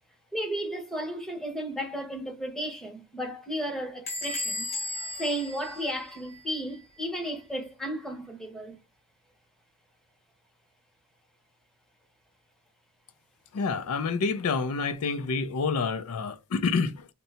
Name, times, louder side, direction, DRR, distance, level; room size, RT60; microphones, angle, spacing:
voice 1, 0.3-4.7 5.2-8.8, equal, ahead, 0.7 m, -34 dB
Bell / Squeak, 4.1-6.6, left 2 dB, 30° left, 1.0 m, -35 dB
voice 2, 13.5-17.1, left 4 dB, 70° left, 0.4 m, -28 dB
2.7 x 2.2 x 4.0 m
head